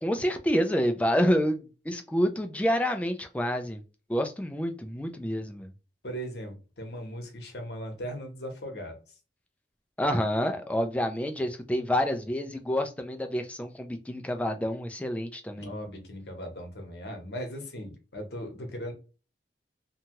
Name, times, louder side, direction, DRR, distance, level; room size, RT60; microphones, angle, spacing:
voice 1, 0.0-3.8 4.1-5.7 10.0-15.7, equal, 5° left, 0.3 m, -28 dB
voice 2, 6.0-9.0 15.5-18.9, equal, 65° left, 0.9 m, -38 dB
2.7 x 2.3 x 2.9 m
head